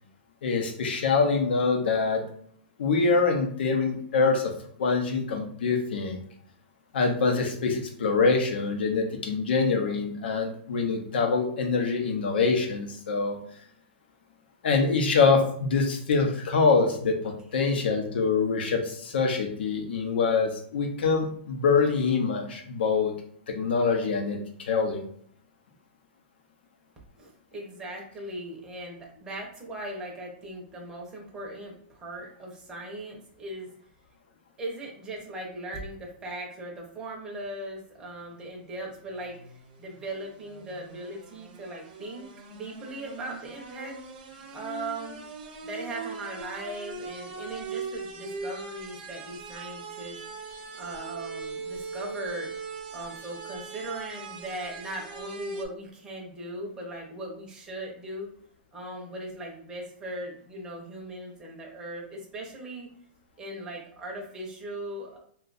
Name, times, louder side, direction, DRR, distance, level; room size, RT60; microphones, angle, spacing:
voice 1, 0.4-2.2 2.8-4.5 4.8-6.2 6.9-13.4 14.6-23.1 23.5-25.0, left 4 dB, 70° left, 3 dB, 0.8 m, -25 dB
voice 2, 27.2-33.7 34.6-42.2 42.5-44.0 44.5-45.2 45.6-50.2 50.8-52.5 52.9-58.3 58.7-62.9 63.4-65.2, right 1 dB, 10° right, -2 dB, 0.7 m, -39 dB
sound 1, 38.9-55.7, right 4 dB, 55° right, 0.7 m, -40 dB
2.7 x 2.3 x 3.9 m, 0.62 s
hypercardioid pair, 165°, 6 cm